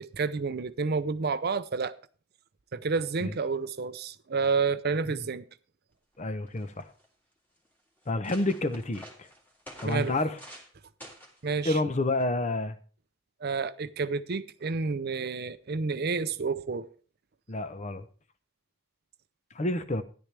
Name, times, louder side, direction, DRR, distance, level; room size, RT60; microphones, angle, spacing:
voice 1, 0.0-1.9 2.7-5.4 9.8-10.1 11.4-11.8 13.4-16.9, right 4 dB, 50° right, 0.6 m, -30 dB
sound 1, 6.1-6.2 6.5-7.1 7.7-7.8 8.0-10.7 11.0-11.4 12.2-12.5, equal, 10° left, 2.1 m, -49 dB
voice 2, 6.2-6.9 8.1-9.3 9.8-10.4 11.6-12.8 17.5-18.0 19.5-20.0, left 2 dB, 35° left, 0.8 m, -29 dB
13.0 x 10.5 x 3.4 m
head